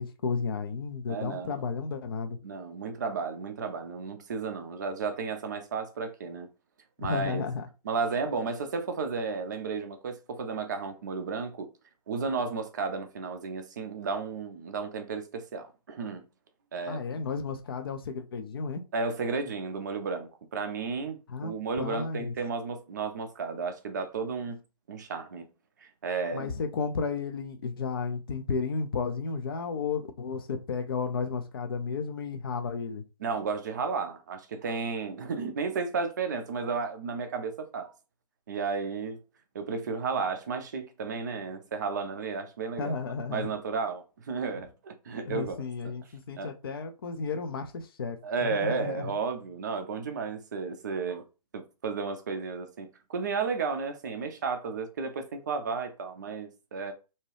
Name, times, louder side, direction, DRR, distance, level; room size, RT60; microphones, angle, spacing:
voice 1, 0.0-2.4 7.0-7.7 16.9-18.8 21.3-22.3 26.3-33.0 42.8-43.5 45.3-49.1, left 5 dB, 35° left, 0.4 m, -33 dB
voice 2, 1.1-1.6 2.4-6.5 7.0-7.4 7.8-11.7 12.1-16.2 16.7-17.0 18.9-24.6 24.9-25.5 25.8-26.5 33.2-37.9 38.5-39.2 39.5-43.0 43.3-45.6 46.4-46.5 48.2-51.2 51.5-56.9, right 4 dB, 30° right, 0.4 m, -33 dB
2.7 x 2.2 x 3.2 m
figure-of-eight pair, 135°, 20 cm